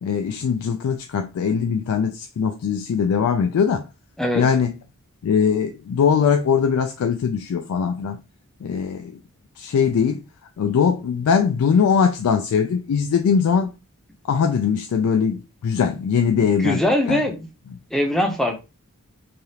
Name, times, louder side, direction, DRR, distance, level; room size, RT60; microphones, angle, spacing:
voice 1, 0.0-3.9 4.3-4.7 5.2-8.2 8.6-9.1 9.6-10.2 10.6-13.7 14.2-16.8 17.1-17.2, left 6 dB, 75° left, 0.3 m, -21 dB
voice 2, 16.6-17.5 17.9-18.6, left 1 dB, ahead, 0.5 m, -21 dB
3.3 x 2.3 x 2.7 m
head